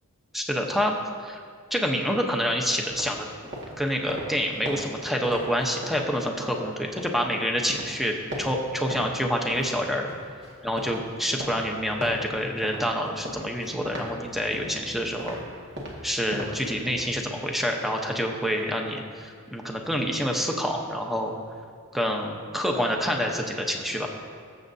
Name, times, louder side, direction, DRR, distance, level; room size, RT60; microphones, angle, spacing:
voice 1, 0.3-1.0 1.2-1.4 1.7-3.3 3.8-10.1 10.6-15.4 16.0-21.4 21.9-24.1, equal, ahead, 1 dB, 0.9 m, -27 dB
sound 1, 2.9-7.3 7.6-9.1 9.4-17.1, equal, 55° right, 1.9 m, -39 dB
19.5 x 7.7 x 2.7 m, 2.2 s
head